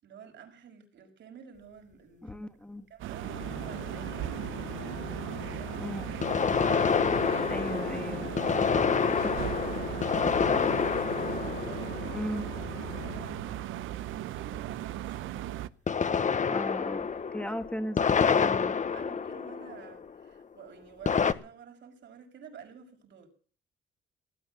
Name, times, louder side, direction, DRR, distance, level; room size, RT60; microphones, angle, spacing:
voice 1, 0.0-2.5 2.9-4.8 5.4-6.0 8.7-11.0 11.3-12.3 12.8-15.6 17.1-17.6 18.6-23.3, right 7 dB, 70° right, 3 dB, 6.0 m, -51 dB
voice 2, 2.2-2.9 5.8-6.1 7.1-8.4 12.1-12.5 16.5-18.0 18.3-18.7, equal, 5° left, 7 dB, 1.9 m, -37 dB
sound 1, 2.3-2.4 6.2-12.7 15.9-20.1 21.1-21.3, left 6 dB, 40° left, 1.2 m, -28 dB
sound 2, 3.0-15.7, right 13 dB, 85° right, 0.8 m, -37 dB
Organ, 3.2-14.1, left 11 dB, 90° left, 1.1 m, -44 dB
18.5 x 10.0 x 7.3 m, 0.42 s
cardioid pair, 90°, 20 cm